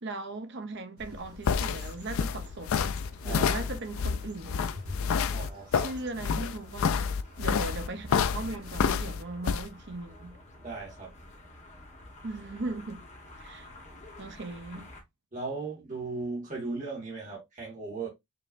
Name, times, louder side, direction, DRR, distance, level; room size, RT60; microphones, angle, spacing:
voice 1, 0.0-3.0 3.2-5.0 5.7-7.0 7.4-10.4 12.2-13.0 13.4-13.7 14.2-14.9, right 2 dB, 50° right, 0.7 m, -39 dB
sound 1, 1.0-9.7, left 6 dB, 65° left, 0.4 m, -29 dB
sound 2, 1.0-9.0, left 1 dB, 75° right, 1.7 m, -50 dB
sound 3, 2.7-15.0, left 1 dB, 30° left, 1.2 m, -51 dB
voice 2, 5.3-5.9 10.6-11.1 15.3-18.1, right 3 dB, 35° right, 1.9 m, -37 dB
5.4 x 3.0 x 2.5 m
head